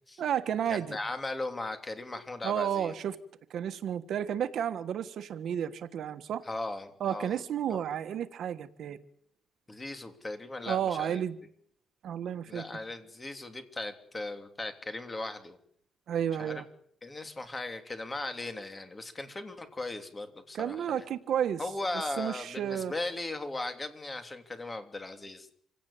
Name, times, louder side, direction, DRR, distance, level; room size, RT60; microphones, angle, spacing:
voice 1, 0.2-1.0 2.4-3.2 3.5-6.4 7.0-9.0 10.7-11.4 12.0-12.6 16.1-16.6 20.5-21.6 22.2-22.9, right 9 dB, 65° right, 11 dB, 1.5 m, -32 dB
voice 2, 0.7-2.9 6.4-7.4 7.7-7.8 9.7-11.2 12.5-15.6 16.4-16.6 17.0-21.0 21.6-25.5, left 2 dB, 15° left, 8 dB, 3.1 m, -38 dB
26.5 x 17.5 x 8.6 m, 0.66 s
cardioid pair, 145°, 0 cm